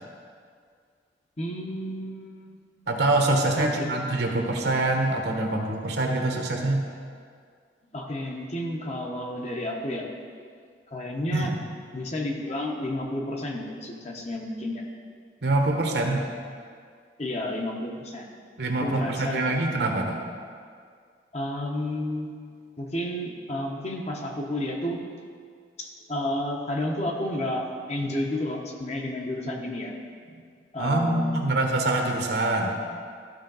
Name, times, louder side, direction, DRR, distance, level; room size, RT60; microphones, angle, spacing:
voice 1, 1.4-2.6 3.6-4.0 7.9-10.1 10.9-11.5 11.9-14.8 17.2-18.3 18.8-19.6 21.3-25.0 25.8-29.9 30.7-31.4, left 1 dB, 35° left, 0 dB, 0.9 m, -31 dB
voice 2, 2.9-6.8 11.3-11.5 15.4-16.4 18.6-20.2 30.8-32.8, right 2 dB, 60° right, 2 dB, 1.1 m, -25 dB
13.5 x 5.1 x 3.9 m, 2.1 s
head